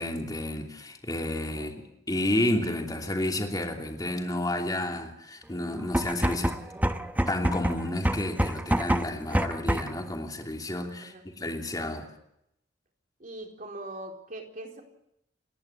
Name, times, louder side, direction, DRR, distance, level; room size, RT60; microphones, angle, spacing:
voice 1, 0.0-6.5 7.3-12.1, left 1 dB, 20° left, 2.9 m, -31 dB
sound 1, 5.8-10.0, right 1 dB, 10° right, 1.0 m, -27 dB
voice 2, 13.2-14.8, right 1 dB, 50° right, 4.3 m, -41 dB
29.0 x 11.0 x 10.0 m
head